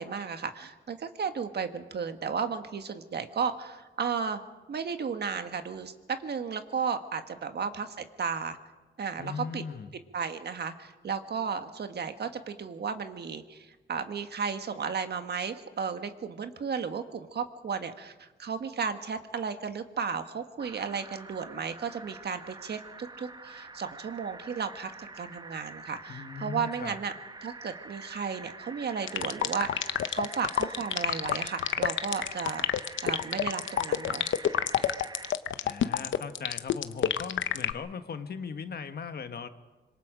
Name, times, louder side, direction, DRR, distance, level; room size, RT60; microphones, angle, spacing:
voice 1, 0.0-4.4 4.7-5.9 6.2-8.6 9.0-9.6 10.1-27.1 27.4-34.2, right 6 dB, 60° right, 8 dB, 1.5 m, -34 dB
voice 2, 9.2-9.9 26.1-27.0 35.6-39.5, left 6 dB, 55° left, 9 dB, 1.4 m, -39 dB
sound 1, 20.6-35.3, right 3 dB, 20° right, 0.9 m, -46 dB
sound 2, 29.1-37.7, left 10 dB, 80° left, 0.8 m, -27 dB
25.5 x 22.0 x 5.1 m, 1.2 s
cardioid pair, 95°, 20 cm